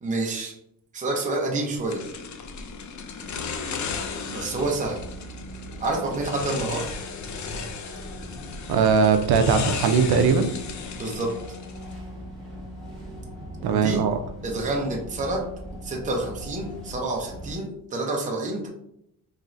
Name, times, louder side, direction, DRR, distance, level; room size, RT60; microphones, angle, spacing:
voice 1, 0.0-0.5 0.9-2.0 4.3-5.0 5.8-6.9 10.9-11.3 13.7-14.0 14.4-15.4 15.8-18.7, right 2 dB, 20° right, -1 dB, 0.6 m, -28 dB
sound 1, 1.9-12.0, left 5 dB, 50° left, 0.4 m, -35 dB
sound 2, 3.9-17.5, equal, ahead, 1.3 m, -40 dB
voice 2, 8.7-10.5 13.6-14.2, right 5 dB, 70° right, 8 dB, 0.5 m, -20 dB
4.3 x 3.1 x 2.5 m, 0.77 s
wide cardioid pair, 165°, 40 cm